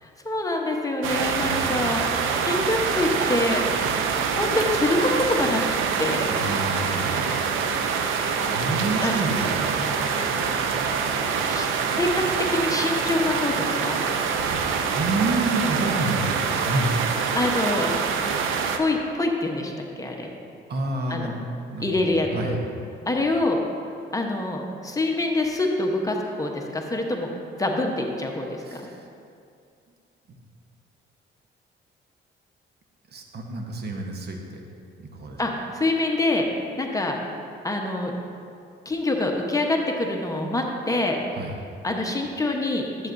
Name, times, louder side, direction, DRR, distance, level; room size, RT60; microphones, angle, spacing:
voice 1, 0.0-4.0 4.3-5.6 6.0-6.3 9.0-9.2 11.5-12.2 12.5-14.1 17.3-17.9 18.7-20.3 21.1-21.3 21.8-22.6 23.1-23.6 24.1-27.3 27.6-28.9 35.4-36.5 36.8-37.2 37.6-38.1 38.8-41.2 41.8-42.9, left 2 dB, 15° left, 1 dB, 0.9 m, -25 dB
sound 1, 1.0-18.8, right 6 dB, 85° right, 0.6 m, -25 dB
voice 2, 1.4-2.1 6.3-7.4 8.5-10.5 14.1-17.1 20.7-21.4 21.7-22.9 28.6-29.1 33.1-34.6 35.0-35.4 41.3-41.5, right 2 dB, 55° right, 2 dB, 1.1 m, -30 dB
12.0 x 7.9 x 2.6 m, 2.4 s
cardioid pair, 90°, 20 cm